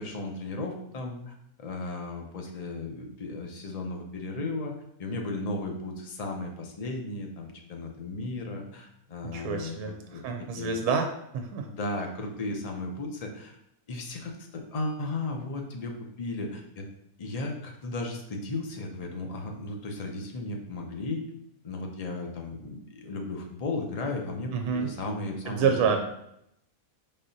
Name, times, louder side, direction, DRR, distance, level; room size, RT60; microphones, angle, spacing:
voice 1, 0.0-4.7 5.0-10.7 11.6-13.6 13.9-16.9 17.2-21.2 21.6-26.0, left 2 dB, 75° left, 2 dB, 0.3 m, -35 dB
voice 2, 9.2-11.7 24.5-24.9 25.5-26.0, right 6 dB, 80° right, 4 dB, 1.1 m, -28 dB
4.7 x 3.7 x 2.7 m, 0.76 s
omnidirectional pair, 1.6 m